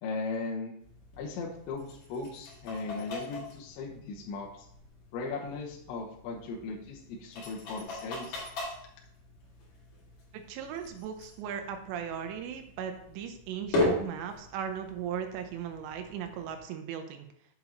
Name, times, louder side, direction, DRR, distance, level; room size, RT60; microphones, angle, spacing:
voice 1, 0.0-0.7 1.2-4.7 5.1-8.4, left 3 dB, 75° left, -2 dB, 3.2 m, -37 dB
sound 1, 0.8-16.6, left 1 dB, 50° left, 3.3 m, -39 dB
voice 2, 10.3-17.3, right 8 dB, 80° right, 6 dB, 2.6 m, -38 dB
8.3 x 7.9 x 2.9 m, 0.69 s
omnidirectional pair, 5.6 m